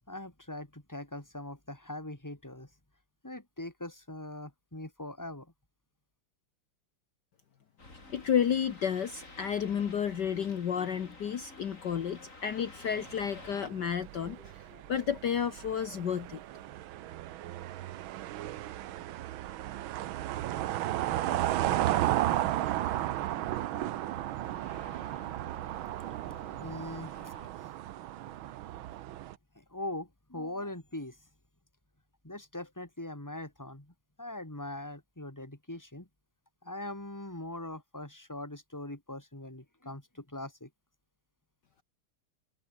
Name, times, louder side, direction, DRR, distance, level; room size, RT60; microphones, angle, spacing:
voice 1, 0.1-2.7 3.2-5.5 26.2-27.8 29.6-31.3 32.2-36.1 36.6-40.7, left 1 dB, 10° left, 3.5 m, -42 dB
sound 1, 7.8-13.7, left 2 dB, 35° left, 5.1 m, -50 dB
voice 2, 8.1-16.4, left 8 dB, 55° left, 1.8 m, -31 dB
sound 2, 12.9-29.3, right 14 dB, 75° right, 1.6 m, -34 dB
sound 3, 21.3-27.5, right 3 dB, 55° right, 5.5 m, -51 dB
omnidirectional pair, 2.3 m